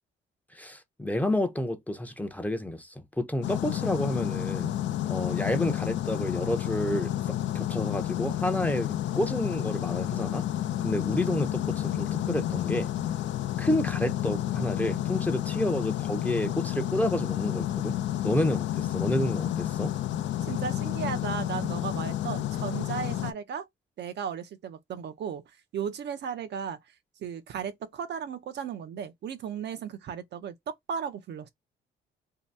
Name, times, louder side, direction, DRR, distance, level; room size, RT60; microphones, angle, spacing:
voice 1, 0.5-4.8 5.1-7.1 7.5-10.5 10.8-12.9 13.6-19.9, left 1 dB, 10° left, 0.6 m, -30 dB
sound 1, 3.4-23.3, left 12 dB, 65° left, 0.4 m, -30 dB
voice 2, 20.4-23.7 24.0-25.4 25.7-26.8 27.2-30.5 30.9-31.5, right 7 dB, 60° right, 0.5 m, -35 dB
2.7 x 2.2 x 3.2 m
cardioid pair, 90°, 20 cm